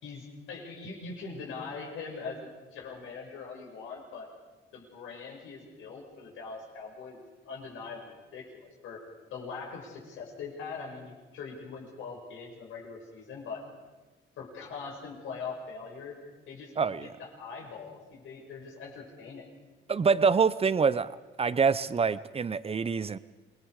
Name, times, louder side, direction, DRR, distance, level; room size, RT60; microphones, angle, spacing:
voice 1, 0.0-4.3 4.7-9.0 9.3-13.7 14.4-16.2 16.5-16.7 17.0-19.5, left 4 dB, 80° left, -1 dB, 6.0 m, -42 dB
voice 2, 16.8-17.1 19.9-21.1 21.4-23.2, right 5 dB, 30° right, 16 dB, 0.8 m, -25 dB
27.5 x 21.0 x 4.9 m, 1.3 s
cardioid pair, 90°, 20 cm